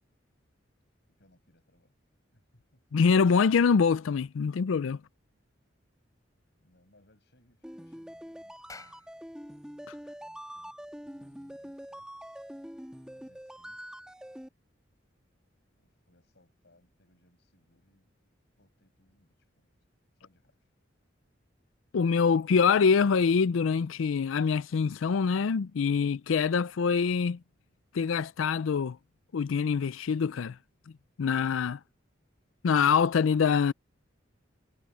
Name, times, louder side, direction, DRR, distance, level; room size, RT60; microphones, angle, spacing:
voice 1, 1.2-2.0 2.3-3.0 6.6-9.1 10.0-12.3 13.1-13.9 15.8-18.1 18.6-19.7 20.2-20.6, left 1 dB, 60° left, 7.5 m, -67 dB
voice 2, 2.9-5.0 21.9-27.4 27.9-29.0 29.3-30.6 31.2-31.8 32.6-33.7, left 6 dB, 90° left, 0.4 m, -25 dB
sound 1, 7.6-14.5, equal, 5° right, 1.4 m, -45 dB
Clapping, 8.6-13.4, left 3 dB, 20° left, 4.3 m, -55 dB
head